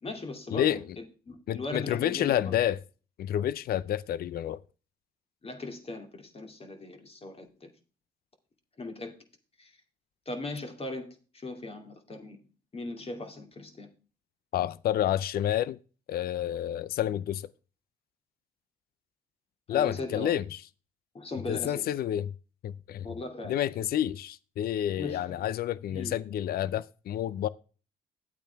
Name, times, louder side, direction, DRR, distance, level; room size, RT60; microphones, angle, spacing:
voice 1, 0.0-2.5 5.4-7.7 8.8-9.1 9.6-9.7 10.3-11.1 11.3-12.4 12.7-13.9 19.7-20.3 21.1-21.9 23.0-23.6 25.0-25.4 25.9-26.1, left 2 dB, 35° left, 2.5 m, -38 dB
voice 2, 1.5-2.8 3.2-4.6 14.5-15.8 16.1-17.5 19.7-20.4 21.5-22.3 22.6-23.1 23.4-27.5, left 11 dB, 65° left, 0.5 m, -29 dB
10.5 x 8.5 x 3.5 m
cardioid pair, 75°, 17 cm